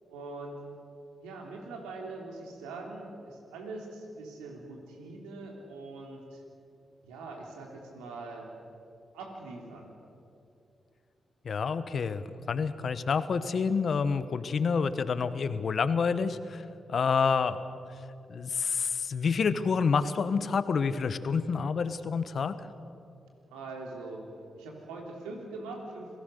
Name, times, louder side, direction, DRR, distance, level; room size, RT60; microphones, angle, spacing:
voice 1, 0.1-0.5 1.2-6.4 7.0-8.5 9.1-9.9 23.5-24.3 24.5-26.1, right 3 dB, 90° right, 1 dB, 3.2 m, -42 dB
voice 2, 11.4-16.6 16.9-17.6 18.3-22.6, left 5 dB, 60° left, 12 dB, 1.2 m, -28 dB
27.0 x 18.0 x 6.7 m, 2.7 s
hypercardioid pair, 40°, 0 cm